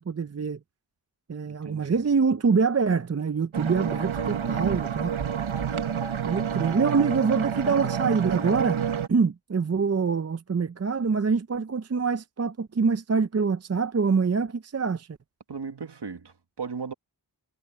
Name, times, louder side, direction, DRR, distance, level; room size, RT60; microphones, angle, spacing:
voice 1, 0.1-0.6 1.3-5.1 6.3-8.8 9.1-15.1, right 5 dB, 35° right, 0.6 m, -25 dB
voice 2, 1.6-2.0 4.4-4.9 15.5-16.9, right 5 dB, 60° right, 1.7 m, -37 dB
sound 1, 3.5-9.1, right 8 dB, 90° right, 1.2 m, -29 dB
wide cardioid pair, 90°, 46 cm